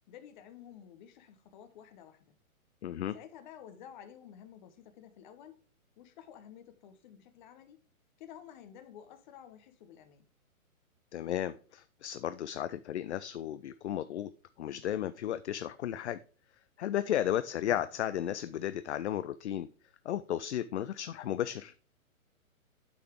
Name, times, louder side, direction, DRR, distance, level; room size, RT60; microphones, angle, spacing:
voice 1, 0.1-2.3 3.1-5.6 6.0-7.8 8.2-10.3, left 9 dB, 35° left, 1.1 m, -52 dB
voice 2, 2.8-3.1 11.1-14.3 14.6-16.2 16.8-19.7 20.1-21.7, left 11 dB, 55° left, 0.5 m, -34 dB
8.3 x 6.1 x 3.5 m
hypercardioid pair, 140°, 43 cm